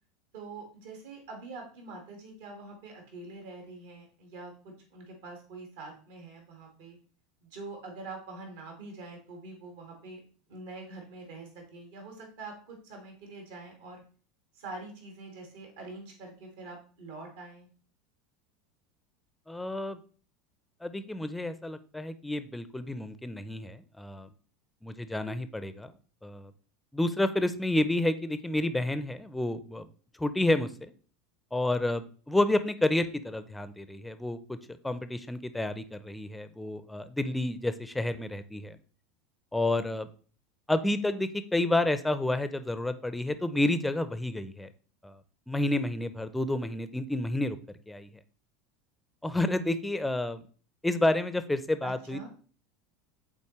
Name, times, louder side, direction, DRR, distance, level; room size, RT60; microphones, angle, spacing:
voice 1, 0.3-7.0 7.4-10.2 10.5-14.0 14.5-17.7 51.8-52.3, right 3 dB, 65° right, 2 dB, 1.8 m, -45 dB
voice 2, 19.5-20.0 20.8-24.3 24.8-25.9 26.2-26.5 26.9-29.9 30.2-30.9 31.5-34.6 34.8-38.8 39.5-40.1 40.7-44.7 45.0-45.2 45.5-47.6 47.9-48.1 49.2-50.4 50.8-52.2, left 1 dB, 5° left, 12 dB, 0.6 m, -30 dB
8.5 x 4.1 x 3.1 m, 0.41 s
figure-of-eight pair, 75°, 0 cm